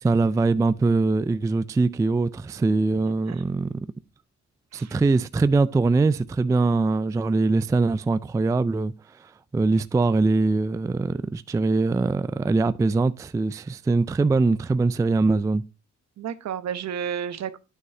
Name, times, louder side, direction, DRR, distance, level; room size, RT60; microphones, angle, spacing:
voice 1, 0.0-3.7 4.7-8.9 9.5-15.6, right 3 dB, 10° right, 0.3 m, -22 dB
voice 2, 16.2-17.6, right 8 dB, 60° right, 1.0 m, -31 dB
9.4 x 6.4 x 2.7 m
cardioid pair, 90°, 30 cm